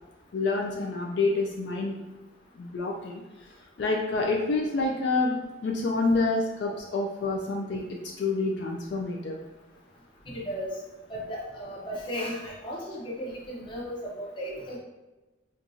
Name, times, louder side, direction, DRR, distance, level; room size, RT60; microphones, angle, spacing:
voice 1, 0.3-1.9 2.6-3.2 3.8-5.3 5.6-7.8 8.2-9.3, left 3 dB, 60° left, 0 dB, 0.4 m, -27 dB
voice 2, 10.3-10.7 11.1-14.8, equal, 25° left, -4 dB, 0.7 m, -35 dB
4.4 x 2.3 x 2.6 m, 1.1 s
head